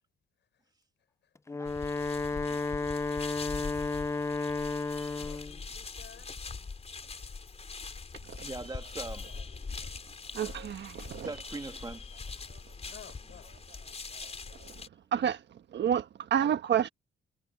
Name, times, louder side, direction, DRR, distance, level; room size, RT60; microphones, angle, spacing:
Wind instrument woodwind instrument, 1.4-5.6, left 3 dB, 15° left, 0.5 m, -32 dB
sound 1, 1.6-14.9, left 4 dB, 30° left, 4.5 m, -42 dB
voice 1, 2.3-3.0 6.6-6.7 7.9-8.0 8.4-9.4 10.1-10.2 11.0-12.5, right 2 dB, 20° right, 2.1 m, -43 dB
voice 2, 5.0-6.3 7.0-7.1 12.9-13.6, left 9 dB, 65° left, 6.5 m, -53 dB
voice 3, 10.3-11.3 12.5-12.6 14.1-14.8 15.1-16.9, right 9 dB, 60° right, 1.4 m, -30 dB
cardioid pair, 90°, 20 cm